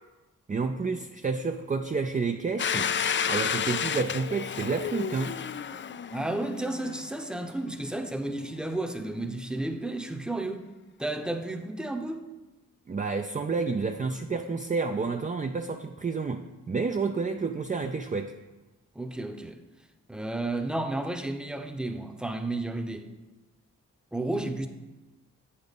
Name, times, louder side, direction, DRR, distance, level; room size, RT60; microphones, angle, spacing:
voice 1, 0.5-2.9 3.3-5.4 12.9-18.3, right 4 dB, 25° right, 0.4 m, -30 dB
Domestic sounds home sounds, 2.6-7.2, left 7 dB, 35° left, 0.4 m, -31 dB
voice 2, 6.1-10.7 11.0-12.2 18.9-19.6 20.1-23.1 24.1-24.7, right 2 dB, ahead, 0.8 m, -32 dB
8.3 x 4.1 x 5.2 m
cardioid pair, 45°, 33 cm